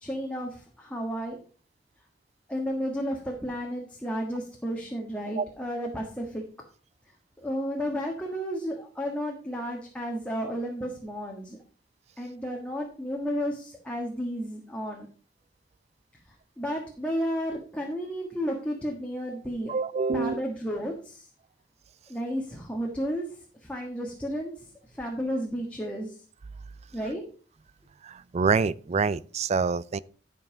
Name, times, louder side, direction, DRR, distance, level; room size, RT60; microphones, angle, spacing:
voice 1, 0.0-1.4 2.5-6.4 7.4-11.6 12.2-15.1 16.6-19.7 20.1-21.3 22.1-23.2 23.6-24.6 24.9-26.2 26.9-27.2, equal, 5° left, 1.5 m, -32 dB
voice 2, 19.7-20.4 28.0-30.0, right 5 dB, 40° right, 0.4 m, -26 dB
12.0 x 5.5 x 5.0 m
head